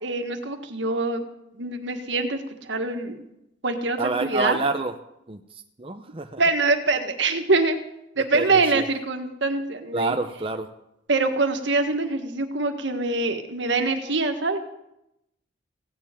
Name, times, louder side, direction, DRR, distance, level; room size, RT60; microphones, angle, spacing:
voice 1, 0.0-1.2 1.6-3.2 3.6-4.6 6.4-7.8 8.2-10.2 11.1-14.6, right 3 dB, 70° right, 6 dB, 1.6 m, -24 dB
voice 2, 4.0-4.9 5.3-5.4 5.8-6.4 8.3-8.9 9.9-10.7, right 3 dB, 30° right, 5 dB, 0.7 m, -27 dB
16.5 x 7.5 x 9.6 m, 0.86 s
head